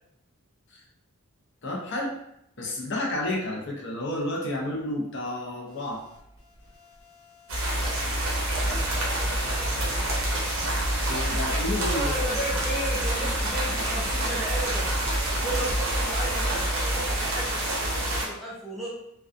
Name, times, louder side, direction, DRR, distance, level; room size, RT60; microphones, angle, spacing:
voice 1, 1.6-2.2 2.6-6.0 11.1-12.1, left 1 dB, 55° left, -1 dB, 0.5 m, -31 dB
sound 1, 5.7-10.4 10.7-17.3, right 1 dB, 70° left, 1.0 m, -35 dB
sound 2, 7.5-18.3, right 1 dB, 65° right, 0.7 m, -28 dB
voice 2, 8.5-10.2 11.9-15.0 15.4-18.9, right 1 dB, ahead, -7 dB, 0.3 m, -35 dB
2.5 x 2.2 x 2.3 m, 0.78 s
head